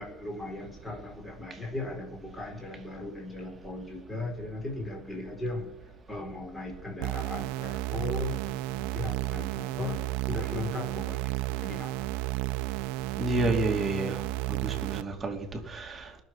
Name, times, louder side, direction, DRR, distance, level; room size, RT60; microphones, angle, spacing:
voice 1, 0.0-5.7 6.1-10.0 10.3-12.1, left 2 dB, 10° left, 0 dB, 4.5 m, -37 dB
sound 1, 7.0-15.0, right 18 dB, 75° right, 1.0 m, -32 dB
voice 2, 13.2-14.2 14.5-16.1, right 2 dB, 20° right, 3 dB, 2.6 m, -30 dB
20.0 x 6.9 x 9.8 m, 0.79 s
cardioid pair, 150°, 0 cm